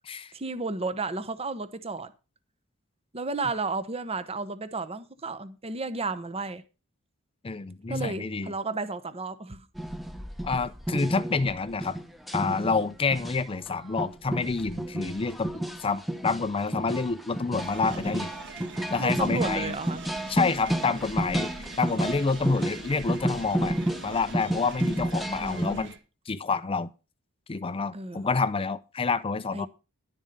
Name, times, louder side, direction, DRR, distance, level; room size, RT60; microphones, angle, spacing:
voice 1, 0.3-2.1 3.1-6.6 7.9-9.7 19.0-20.0 20.7-21.1 25.4-25.9 27.9-28.2 29.5-29.7, right 3 dB, 30° right, 0.9 m, -33 dB
voice 2, 7.4-8.5 10.4-12.0 12.3-18.3 18.9-19.8 20.3-25.9 26.3-26.9 27.5-29.7, left 4 dB, 25° left, 0.5 m, -28 dB
sound 1, 9.7-25.8, right 1 dB, ahead, 0.9 m, -31 dB
sound 2, 17.6-26.0, right 4 dB, 55° right, 1.6 m, -44 dB
11.5 x 7.2 x 5.2 m
head